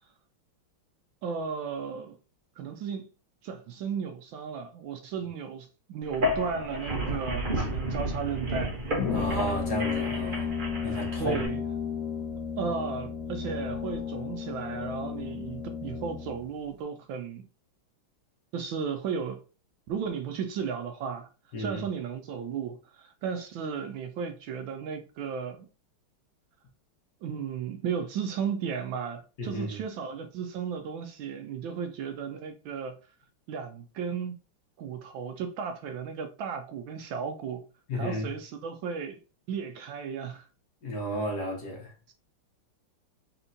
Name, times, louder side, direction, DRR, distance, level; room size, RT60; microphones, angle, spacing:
voice 1, 1.2-2.2 2.6-3.1 3.4-8.8 11.2-11.6 12.6-17.4 18.5-19.4 19.9-21.3 21.6-25.7 27.2-32.9 33.5-34.4 34.8-37.6 37.9-39.2 39.5-40.4 42.1-42.2, right 6 dB, 75° right, 1.2 m, -34 dB
sound 1, 6.0-11.5, equal, 45° right, 0.6 m, -32 dB
Brass instrument, 9.0-16.4, left 6 dB, 70° left, 1.1 m, -33 dB
voice 2, 9.1-10.5 10.8-11.4 21.5-21.8 29.4-29.8 37.9-38.3 40.8-41.9, equal, 55° left, 1.4 m, -33 dB
4.2 x 3.4 x 2.6 m
omnidirectional pair, 2.4 m